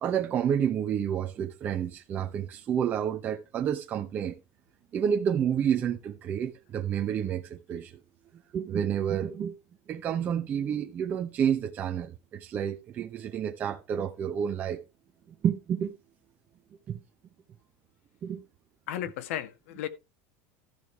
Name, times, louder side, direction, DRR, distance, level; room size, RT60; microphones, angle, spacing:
voice 1, 0.0-4.4 4.9-8.0 8.5-9.5 9.9-14.8 15.4-15.9 16.9-17.0 18.2-18.4, right 8 dB, 25° right, 0.8 m, -29 dB
voice 2, 18.9-19.9, left 11 dB, 80° left, 1.7 m, -34 dB
13.0 x 6.7 x 4.5 m
supercardioid pair, 175°, 7 cm